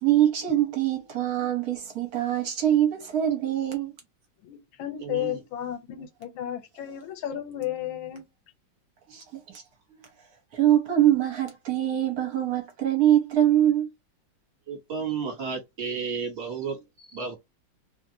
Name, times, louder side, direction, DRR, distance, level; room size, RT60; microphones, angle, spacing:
voice 1, 0.0-3.9 9.1-9.6 10.5-13.9, right 11 dB, 55° right, 1.2 m, -23 dB
voice 2, 4.4-8.2, left 11 dB, 85° left, 1.5 m, -33 dB
voice 3, 5.0-5.4 14.7-17.4, right 5 dB, 35° right, 1.3 m, -33 dB
3.1 x 2.5 x 2.7 m
omnidirectional pair, 2.1 m